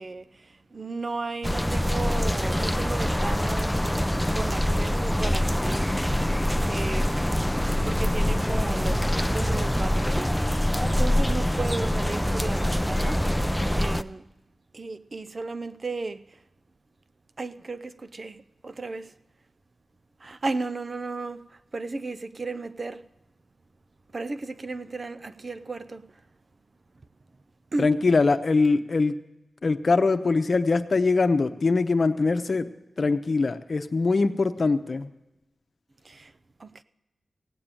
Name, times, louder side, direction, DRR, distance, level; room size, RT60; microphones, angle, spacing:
voice 1, 0.0-3.9 4.3-6.0 6.7-7.2 7.8-13.5 13.8-14.2 14.7-16.4 17.4-19.1 20.2-23.0 24.1-26.1 27.7-27.9 36.0-36.3 36.6-36.8, right 3 dB, 50° right, 0.5 m, -35 dB
sound 1, 1.4-14.0, equal, 5° left, 0.5 m, -25 dB
voice 2, 27.8-29.1 29.6-32.7 33.0-35.1, left 3 dB, 60° left, 0.8 m, -22 dB
17.0 x 6.7 x 9.0 m
wide cardioid pair, 65°, 0 cm